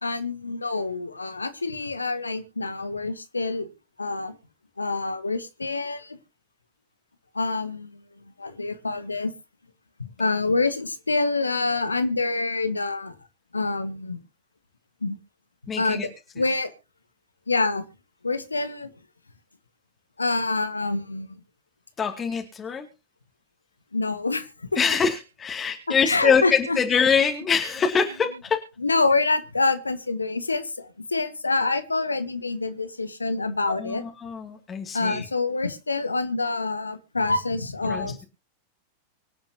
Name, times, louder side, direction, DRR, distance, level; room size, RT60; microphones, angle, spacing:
voice 1, 0.0-3.7 4.0-4.4 4.8-6.2 7.3-8.0 8.4-9.3 10.0-13.1 13.5-14.2 15.0-15.2 15.8-16.1 16.4-16.7 17.5-17.8 18.2-18.9 20.2-21.3 23.9-24.7 26.0-26.8 28.8-34.0 34.9-38.2, left 3 dB, 80° left, 11 dB, 1.7 m, -26 dB
voice 2, 15.7-16.1 22.0-22.9 24.8-28.6 33.7-35.2 37.9-38.1, left 6 dB, 20° left, 3 dB, 2.4 m, -24 dB
25.0 x 8.8 x 2.9 m, 0.30 s
figure-of-eight pair, 90°, 0 cm